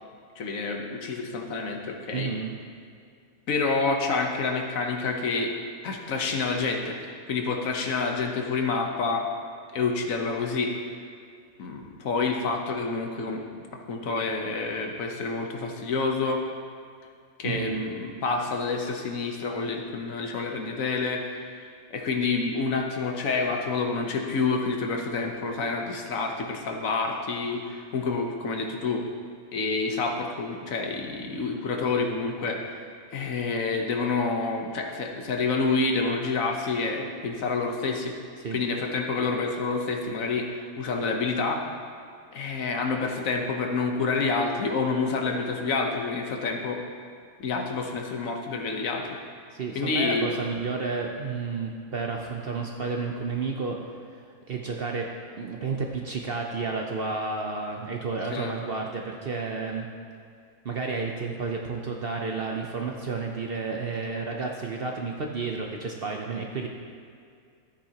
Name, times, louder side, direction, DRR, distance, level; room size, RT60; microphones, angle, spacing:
voice 1, 0.4-2.3 3.5-5.5 5.8-9.3 9.7-10.8 11.6-13.6 13.9-16.4 17.4-29.0 29.5-32.6 33.1-38.1 38.5-41.6 42.3-46.8 47.4-49.1 49.7-50.3 58.3-58.5, left 4 dB, 65° left, 2 dB, 1.3 m, -28 dB
voice 2, 2.1-2.6 17.4-17.8 38.4-38.6 49.5-53.8 54.3-55.1 55.4-59.9 60.6-66.7, right 4 dB, 55° right, 1 dB, 0.7 m, -31 dB
13.5 x 8.4 x 2.8 m, 2.3 s
omnidirectional pair, 1.5 m